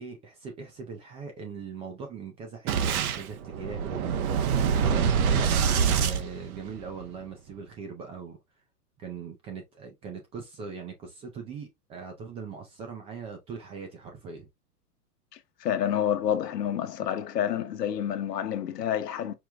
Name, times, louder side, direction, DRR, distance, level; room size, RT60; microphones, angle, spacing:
voice 1, 0.0-4.0 4.9-8.4 9.0-14.5, right 5 dB, 15° right, 0.3 m, -40 dB
Boom, 2.7-7.1, right 7 dB, 65° right, 1.0 m, -25 dB
voice 2, 15.3-19.3, left 10 dB, 85° left, 0.9 m, -29 dB
4.7 x 2.2 x 3.4 m
hypercardioid pair, 125°, 47 cm